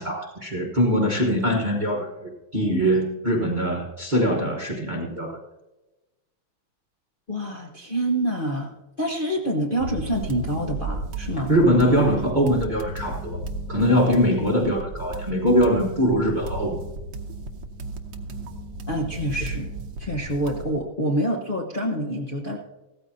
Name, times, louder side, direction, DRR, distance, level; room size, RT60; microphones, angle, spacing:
voice 1, 0.0-5.4 11.5-13.4 13.7-16.8, equal, 25° right, 0 dB, 1.1 m, -22 dB
voice 2, 7.3-11.5 18.9-19.7 20.0-22.6, right 1 dB, 30° left, -2 dB, 1.0 m, -27 dB
sound 1, 9.8-20.4, equal, 90° left, 3.3 m, -36 dB
sound 2, 10.1-20.8, right 4 dB, 65° right, 1.6 m, -38 dB
16.0 x 14.0 x 2.8 m, 1.1 s
omnidirectional pair, 2.3 m